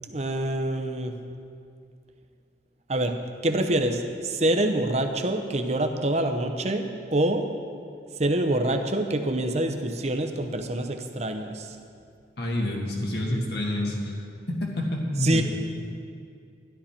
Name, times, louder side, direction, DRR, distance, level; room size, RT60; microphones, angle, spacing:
voice 1, 0.1-1.1 2.9-3.1 3.4-7.4 8.2-11.8 15.2-15.4, right 1 dB, 35° right, 6 dB, 0.8 m, -26 dB
voice 2, 12.4-14.2 14.5-15.4, left 1 dB, 60° left, -1 dB, 1.8 m, -28 dB
12.5 x 12.0 x 4.4 m, 2.3 s
head